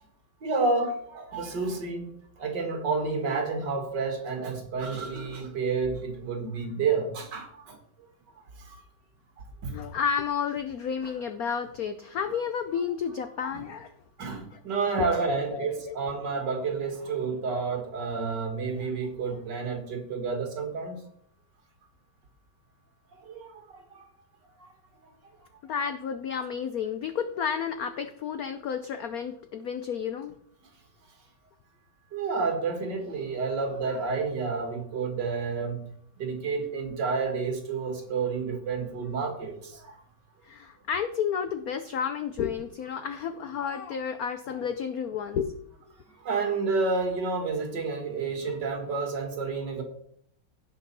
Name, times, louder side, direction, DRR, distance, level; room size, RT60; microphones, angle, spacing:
voice 1, 0.4-7.8 8.6-8.8 9.6-9.7 11.0-11.1 13.5-13.6 14.2-21.0 23.1-24.1 32.1-35.8 36.2-40.0 46.2-49.8, right 4 dB, 55° right, 4 dB, 2.2 m, -30 dB
voice 2, 9.7-13.9 14.5-14.6 15.0-16.0 25.6-30.3 40.4-45.5, left 7 dB, 75° left, 9 dB, 0.8 m, -31 dB
16.5 x 5.5 x 4.1 m, 0.66 s
omnidirectional pair, 2.3 m